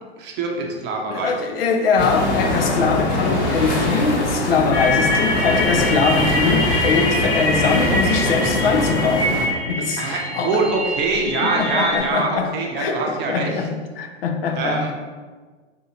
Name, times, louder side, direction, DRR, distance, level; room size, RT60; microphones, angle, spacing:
voice 1, 0.2-1.3 10.0-13.5 14.6-14.9, right 3 dB, 30° right, 0.7 m, -24 dB
voice 2, 1.1-9.4 9.7-10.6 11.2-14.9, left 4 dB, 55° left, 0.6 m, -22 dB
sound 1, 2.0-9.5, left 1 dB, 25° left, 1.2 m, -23 dB
sound 2, 4.7-12.0, left 1 dB, 80° left, 1.4 m, -24 dB
4.1 x 2.7 x 4.0 m
figure-of-eight pair, 100°, 35 cm